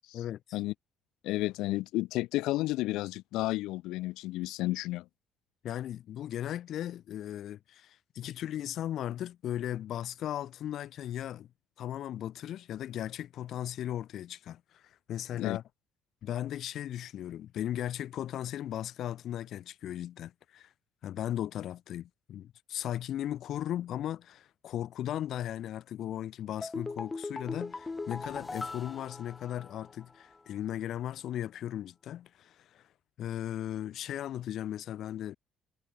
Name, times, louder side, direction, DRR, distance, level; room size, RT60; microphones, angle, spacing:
voice 1, 0.1-0.6 5.6-11.5 11.8-15.6 16.2-20.7 21.0-32.8 33.2-35.4, left 11 dB, 55° left, 1.1 m, -37 dB
voice 2, 1.2-5.0 15.4-15.6, left 18 dB, 90° left, 0.8 m, -32 dB
sound 1, 26.6-30.0 30.3-30.4, left 3 dB, 15° left, 2.5 m, -39 dB
cardioid pair, 155°, 0 cm